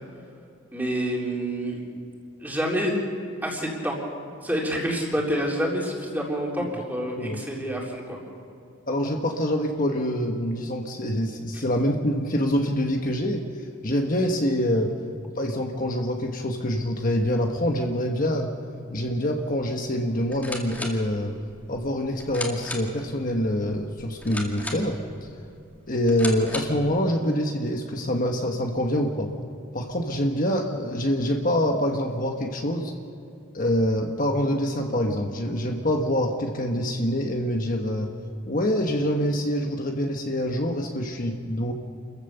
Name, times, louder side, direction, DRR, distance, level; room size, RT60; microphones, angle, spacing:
voice 1, 0.7-1.8 2.4-2.9 3.4-4.0 4.4-8.2, equal, 10° right, -2 dB, 3.7 m, -27 dB
voice 2, 8.9-13.4 13.8-14.9 15.4-18.5 18.9-21.4 21.7-25.0 25.9-29.3 29.7-32.9 33.5-38.1 38.5-41.7, equal, 40° left, 2 dB, 1.3 m, -25 dB
sound 1, 20.2-26.9, left 1 dB, 10° left, 2.4 m, -38 dB
29.0 x 15.0 x 6.9 m, 2.5 s
head